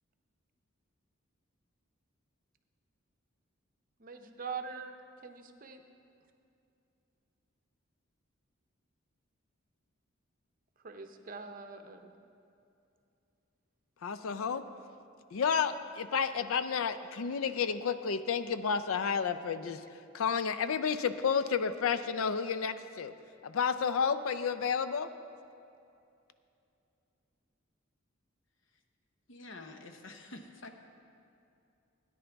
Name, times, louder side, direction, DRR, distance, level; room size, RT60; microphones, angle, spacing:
voice 1, 4.0-5.0 5.2-5.8 10.8-12.1 14.3-14.4, right 5 dB, 40° right, 6 dB, 0.7 m, -43 dB
voice 2, 14.0-14.6 15.3-19.8 20.1-23.1 23.4-25.1, left 6 dB, 80° left, 11 dB, 0.4 m, -31 dB
voice 3, 29.3-30.7, left 2 dB, 60° left, 5 dB, 0.9 m, -48 dB
17.0 x 10.0 x 3.4 m, 2.6 s
head